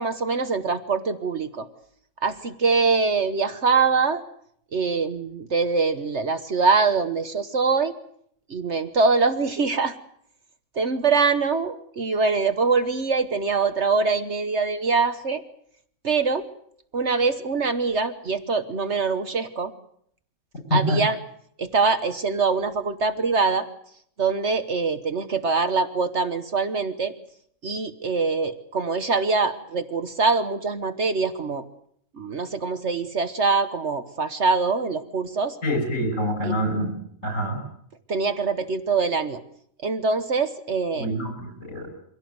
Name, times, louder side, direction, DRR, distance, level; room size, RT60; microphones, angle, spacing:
voice 1, 0.0-1.7 2.2-4.2 4.7-7.9 8.5-9.9 10.7-15.4 16.0-16.5 16.9-19.7 20.7-21.2 21.6-23.7 24.2-27.1 27.6-31.6 32.2-35.6 36.4-36.7 38.1-39.4 39.8-41.1, right 4 dB, 55° right, 10 dB, 1.4 m, -23 dB
voice 2, 35.6-36.9 37.2-37.6 40.9-41.9, equal, 65° left, 6 dB, 6.8 m, -25 dB
24.0 x 17.0 x 9.5 m, 0.67 s
omnidirectional pair, 1.4 m